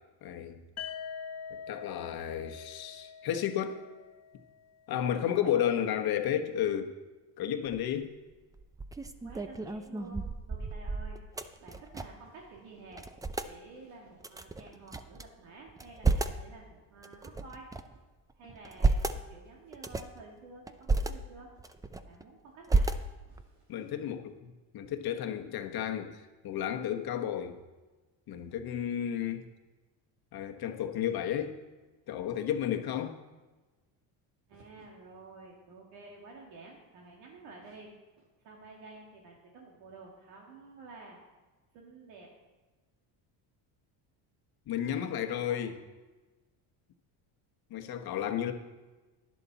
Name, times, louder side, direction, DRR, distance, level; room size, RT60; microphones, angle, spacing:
voice 1, 0.2-0.6 1.7-3.8 4.9-6.9 7.4-8.1 23.7-27.6 28.3-29.5 30.3-31.6 32.1-33.2 44.7-45.8 47.7-48.5, left 10 dB, 55° left, 5 dB, 1.2 m, -32 dB
sound 1, 0.8-4.6, left 7 dB, 35° left, 1.0 m, -44 dB
voice 2, 5.1-5.8 9.2-11.2 11.6-13.1 13.4-18.0 18.4-21.5 22.0-22.9 23.3-23.9 29.2-29.4 34.5-41.2 41.7-42.3 44.8-45.6 47.8-48.3, right 3 dB, 80° right, -1 dB, 2.2 m, -51 dB
sound 2, 7.7-8.0 8.5-12.3 12.6-12.7 12.9-13.5 14.2-15.2 15.7-16.4 17.0-18.0 18.5-19.2 19.7-20.2 20.7-21.1 21.6-22.2 22.7-23.4, right 3 dB, 10° right, 0.4 m, -31 dB
11.0 x 10.5 x 4.1 m, 1.2 s
cardioid pair, 105°, 45 cm